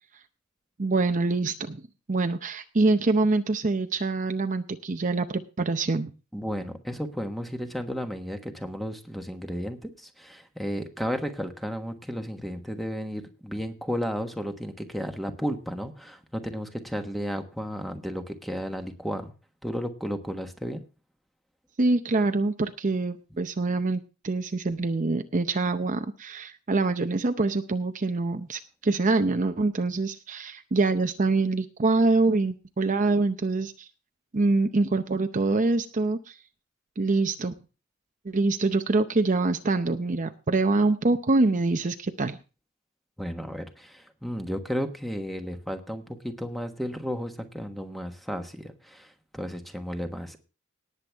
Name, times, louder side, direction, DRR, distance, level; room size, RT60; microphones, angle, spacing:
voice 1, 0.8-1.8 2.1-6.1 21.8-33.9 34.3-36.3 37.0-37.5 38.2-42.4, right 3 dB, 40° right, 8 dB, 0.6 m, -25 dB
voice 2, 6.3-19.3 19.6-20.8 43.2-50.4, equal, ahead, 5 dB, 1.3 m, -33 dB
18.5 x 7.9 x 3.5 m, 0.33 s
head